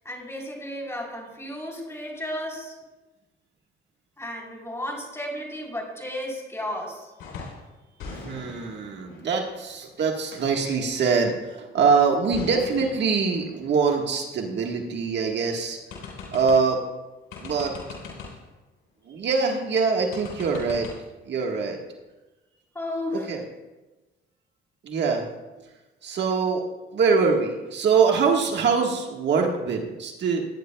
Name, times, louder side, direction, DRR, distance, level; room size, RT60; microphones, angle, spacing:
voice 1, 0.0-2.8 4.2-7.1 22.7-23.3, left 1 dB, 15° left, -1 dB, 3.8 m, -33 dB
sound 1, 7.2-7.7 8.0-10.6 12.3-15.0 15.4-15.5 15.9-16.8 17.3-18.5 20.1-21.0, left 4 dB, 90° left, 3.6 m, -41 dB
voice 2, 8.1-15.8 16.3-16.8 17.4-17.7 19.0-20.9 21.2-21.8 23.1-23.4 24.8-25.3 26.0-26.6 26.9-30.4, right 5 dB, 60° right, 1 dB, 1.5 m, -23 dB
19.0 x 9.9 x 2.3 m, 1.1 s
cardioid pair, 90°, 20 cm